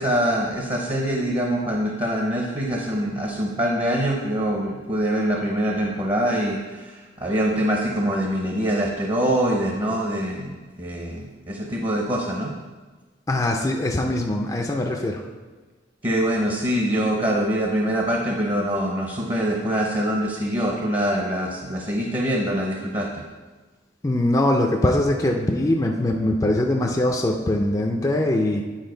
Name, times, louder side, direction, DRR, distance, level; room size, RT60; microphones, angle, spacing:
voice 1, 0.0-12.5 16.0-23.2, equal, 25° right, 0 dB, 0.8 m, -24 dB
voice 2, 13.3-15.2 24.0-28.6, left 1 dB, 20° left, 0 dB, 0.5 m, -22 dB
8.9 x 4.9 x 3.9 m, 1.3 s
head